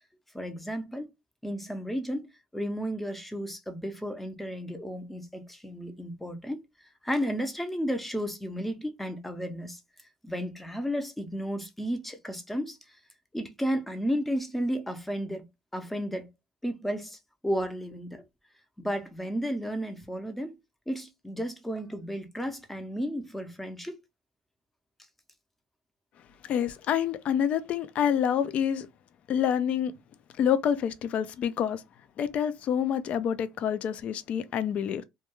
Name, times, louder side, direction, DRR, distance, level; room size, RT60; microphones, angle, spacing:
voice 1, 0.3-1.1 1.4-6.6 7.0-9.8 10.2-12.8 13.3-16.3 16.6-18.2 18.8-20.6 20.9-24.0, equal, 5° left, 0.6 m, -33 dB
voice 2, 26.5-28.9 29.3-29.9 30.4-31.8 32.2-35.0, left 8 dB, 55° left, 0.4 m, -27 dB
2.2 x 2.2 x 3.0 m
supercardioid pair, 100°, 3 cm